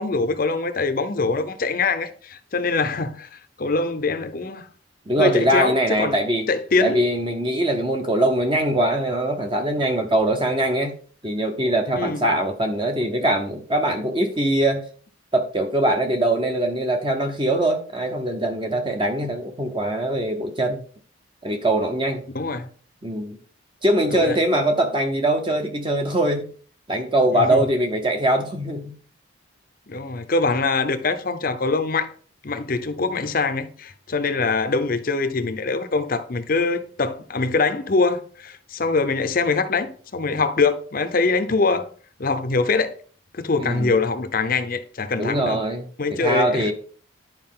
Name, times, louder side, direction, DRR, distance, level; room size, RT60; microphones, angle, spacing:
voice 1, 0.0-3.3 3.6-4.6 5.2-6.2 6.5-7.0 11.9-12.2 22.3-22.7 24.1-24.4 27.3-27.7 29.9-32.1 32.4-41.9 42.2-42.9 43.3-45.6 46.0-46.7, left 3 dB, 45° left, 0.6 m, -23 dB
voice 2, 5.1-6.5 6.8-10.9 11.2-14.8 15.3-20.8 21.4-22.2 23.0-23.4 23.8-26.5 26.9-29.0 43.6-44.0 45.2-46.7, right 1 dB, 25° right, 0.8 m, -22 dB
10.5 x 4.9 x 3.7 m
head